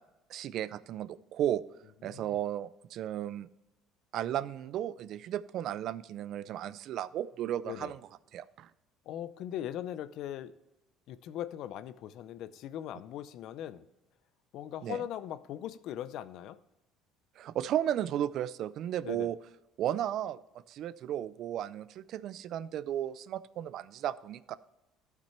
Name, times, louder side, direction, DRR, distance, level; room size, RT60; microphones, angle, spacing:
voice 1, 0.3-1.6 2.0-3.5 4.1-8.0 8.3-8.7 14.8-15.0 17.4-19.4 19.8-20.4 20.7-24.6, right 11 dB, 60° right, 17 dB, 0.4 m, -34 dB
voice 2, 2.0-2.4 7.6-7.9 9.1-10.5 11.1-13.9 14.5-16.6 19.0-19.3, left 11 dB, 65° left, 15 dB, 0.5 m, -40 dB
11.5 x 6.0 x 4.4 m, 0.96 s
cardioid pair, 110°, 0 cm